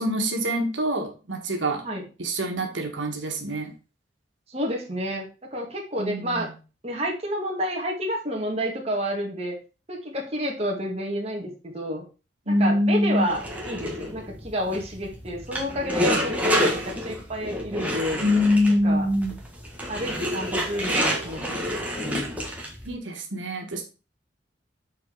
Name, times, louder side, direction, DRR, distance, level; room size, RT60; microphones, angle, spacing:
voice 1, 0.0-1.8 2.2-3.7 6.0-6.5 12.5-13.3 18.2-19.4 22.8-23.8, equal, 90° right, 2 dB, 1.6 m, -24 dB
voice 2, 4.5-6.5 6.8-9.6 9.9-12.0 12.4-13.4 13.7-18.2 18.7-19.0 19.9-22.2, equal, 35° right, 0 dB, 1.9 m, -30 dB
sound 1, 13.2-22.9, equal, 10° right, 1.6 m, -29 dB
7.4 x 4.5 x 4.6 m, 0.32 s
head